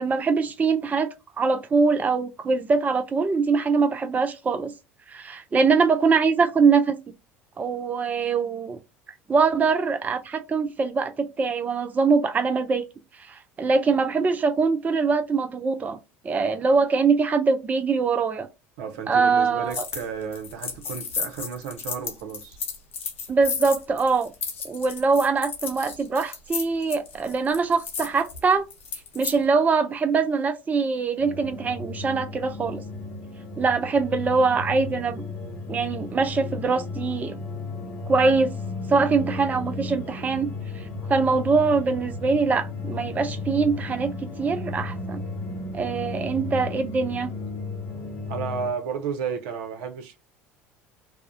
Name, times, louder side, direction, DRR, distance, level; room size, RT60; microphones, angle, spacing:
voice 1, 0.0-4.7 5.1-7.0 7.6-8.8 9.3-12.9 13.2-16.0 16.2-18.5 19.1-19.9 23.3-24.3 24.6-28.6 29.1-32.8 33.6-35.2 35.7-37.4 38.1-38.5 38.9-40.5 40.8-45.2 45.7-47.3, right 4 dB, 25° right, 0.4 m, -23 dB
voice 2, 18.8-22.6 48.3-50.2, right 6 dB, 70° right, 0.6 m, -32 dB
sound 1, 19.7-20.1 20.3-29.4, left 6 dB, 85° left, 0.5 m, -33 dB
sound 2, 31.2-48.7, left 3 dB, 40° left, 0.6 m, -34 dB
2.3 x 2.0 x 2.6 m
hypercardioid pair, 70°, 7 cm